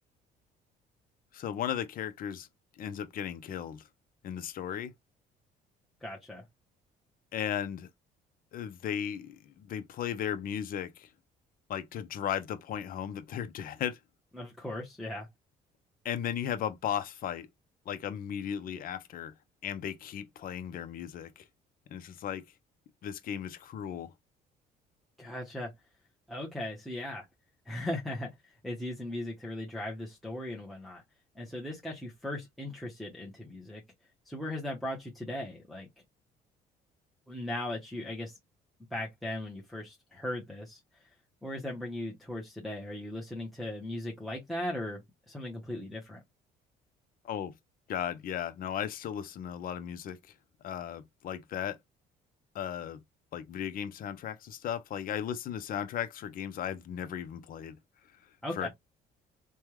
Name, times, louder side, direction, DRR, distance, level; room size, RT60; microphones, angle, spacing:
voice 1, 1.3-2.5 2.8-3.8 4.2-4.9 7.3-7.9 8.5-11.1 11.7-14.0 16.0-17.5 17.9-19.3 19.6-21.4 21.9-22.4 23.0-24.1 47.2-47.5 47.9-50.2 50.6-51.8 52.5-53.0 53.3-57.8 58.6-58.7, left 9 dB, 55° left, 0.7 m, -36 dB
voice 2, 6.0-6.4 14.3-15.3 25.2-25.7 26.3-27.3 27.7-31.0 31.3-33.8 34.2-35.9 37.3-38.4 38.9-40.8 41.4-45.0 45.3-46.2 58.4-58.7, left 1 dB, ahead, 0.9 m, -38 dB
3.4 x 2.2 x 3.0 m
cardioid pair, 110°, 17 cm